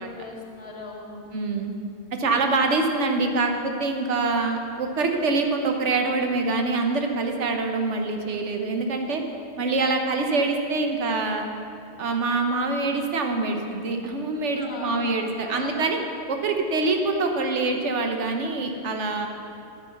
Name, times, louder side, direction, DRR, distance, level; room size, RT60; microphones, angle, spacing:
voice 1, 0.0-1.3 2.2-2.4 14.4-16.0, left 2 dB, 60° left, -2 dB, 1.9 m, -39 dB
voice 2, 1.3-1.7 2.2-9.2 9.6-11.5 12.0-16.0 16.3-19.3, right 3 dB, 80° right, 4 dB, 1.3 m, -25 dB
9.6 x 9.6 x 5.8 m, 2.5 s
omnidirectional pair, 1.2 m